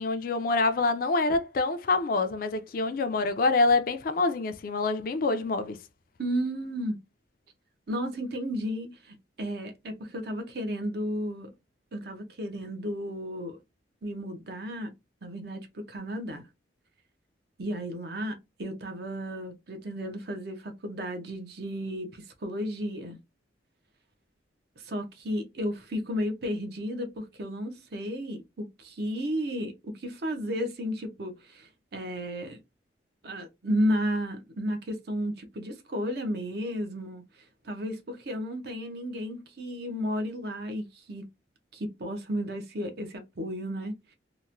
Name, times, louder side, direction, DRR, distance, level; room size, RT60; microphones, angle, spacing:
voice 1, 0.0-5.8, left 3 dB, 50° left, 0.4 m, -26 dB
voice 2, 6.2-7.0 7.9-11.5 11.9-13.6 14.0-14.9 15.2-16.4 17.6-23.2 24.8-32.6 33.2-37.2 37.6-41.3 41.7-44.1, equal, 55° right, 0.6 m, -33 dB
2.9 x 2.1 x 2.5 m
head